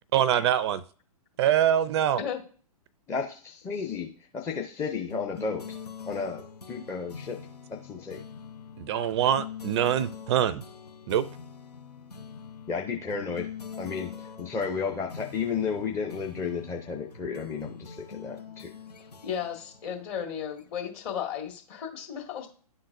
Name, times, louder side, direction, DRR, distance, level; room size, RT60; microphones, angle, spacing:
voice 1, 0.1-0.8 1.4-2.2 8.8-10.6 11.1-11.2, right 10 dB, 45° right, 16 dB, 0.4 m, -24 dB
voice 2, 3.1-4.1 4.3-5.6 6.1-7.4 7.8-8.2 12.7-13.5 13.8-18.7, left 5 dB, 15° left, 1 dB, 0.6 m, -32 dB
sound 1, 5.1-21.0, left 6 dB, 90° left, 0.6 m, -44 dB
voice 3, 19.2-22.5, left 8 dB, 45° left, 1 dB, 1.9 m, -34 dB
11.0 x 3.8 x 2.6 m, 0.42 s
hypercardioid pair, 115°, 20 cm